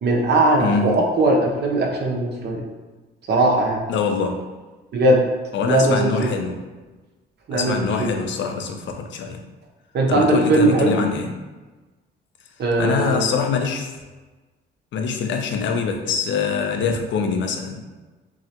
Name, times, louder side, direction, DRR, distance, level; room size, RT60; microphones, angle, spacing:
voice 1, 0.0-2.6 3.3-3.8 4.9-5.2 5.7-6.3 7.5-8.1 9.9-10.9 12.6-13.2, right 2 dB, 55° right, 0 dB, 0.9 m, -19 dB
voice 2, 0.6-0.9 3.9-4.5 5.5-6.6 7.5-9.4 10.1-11.3 12.8-13.9 14.9-17.8, left 5 dB, 70° left, 4 dB, 0.6 m, -24 dB
6.1 x 2.1 x 2.9 m, 1.2 s
cardioid pair, 90°, 20 cm